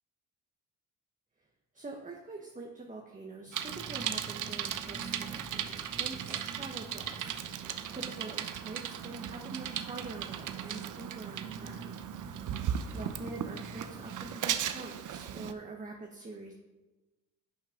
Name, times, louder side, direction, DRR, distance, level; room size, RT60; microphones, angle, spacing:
voice 1, 1.7-12.5 12.9-16.5, right 3 dB, 20° right, 0 dB, 1.3 m, -45 dB
Bicycle, 3.5-15.5, right 9 dB, 60° right, 0.7 m, -37 dB
sound 1, 3.7-14.4, right 1 dB, 5° right, 0.5 m, -51 dB
11.5 x 6.3 x 3.8 m, 1.1 s
cardioid pair, 75°, 35 cm